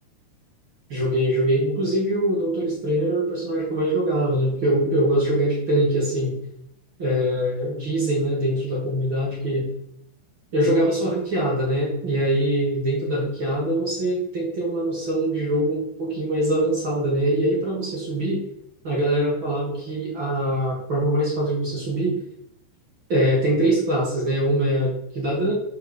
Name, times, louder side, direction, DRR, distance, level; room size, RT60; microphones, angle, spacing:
voice 1, 0.9-6.3 7.0-9.7 10.5-18.4 18.8-22.2 23.1-25.5, right 1 dB, 40° right, -4 dB, 1.9 m, -23 dB
9.3 x 4.7 x 6.5 m, 0.74 s
omnidirectional pair, 5.0 m